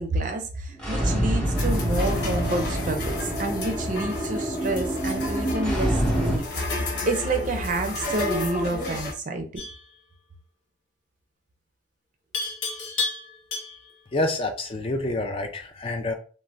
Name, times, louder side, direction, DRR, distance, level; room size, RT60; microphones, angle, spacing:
voice 1, 0.0-6.5 7.1-9.6, right 2 dB, 40° right, 5 dB, 0.4 m, -29 dB
sound 1, 0.7-6.4, equal, 5° left, 0.8 m, -26 dB
sound 2, 1.6-9.1, left 2 dB, 60° left, 1.0 m, -32 dB
Livestock farm animals working animals, 9.6-9.9 12.3-14.0, left 4 dB, 80° left, 0.8 m, -31 dB
voice 2, 14.1-16.1, left 2 dB, 30° left, 5 dB, 0.3 m, -27 dB
2.5 x 2.1 x 3.2 m, 0.39 s
head